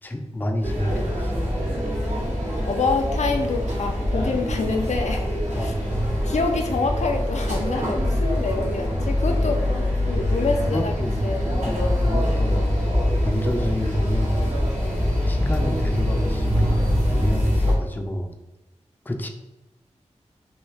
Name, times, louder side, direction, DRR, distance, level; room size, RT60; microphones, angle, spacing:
voice 1, 0.0-1.4 5.5-6.1 10.7-12.7 13.2-14.4 15.1-18.3 19.1-19.3, left 1 dB, 15° left, 4 dB, 0.4 m, -28 dB
sound 1, 0.6-17.7, left 1 dB, 75° right, 1.2 m, -24 dB
voice 2, 2.6-5.7 6.2-9.7 10.1-10.9 11.2-11.5 14.8-15.1, left 4 dB, 75° left, 4 dB, 0.4 m, -27 dB
3.1 x 2.7 x 3.2 m, 1.0 s
wide cardioid pair, 90°, 12 cm